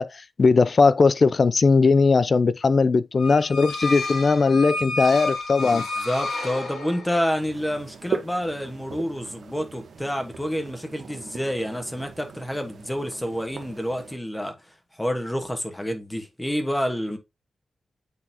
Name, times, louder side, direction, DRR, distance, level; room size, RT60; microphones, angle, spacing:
voice 1, 0.0-5.8, left 4 dB, 50° left, 0.4 m, -19 dB
sound 1, 3.2-7.3, left 2 dB, 80° left, 2.4 m, -30 dB
voice 2, 5.6-14.5 14.9-17.2, equal, 10° left, 1.3 m, -28 dB
sound 2, 7.3-14.2, right 5 dB, 70° right, 1.3 m, -38 dB
8.5 x 4.0 x 2.8 m
cardioid pair, 85°, 0 cm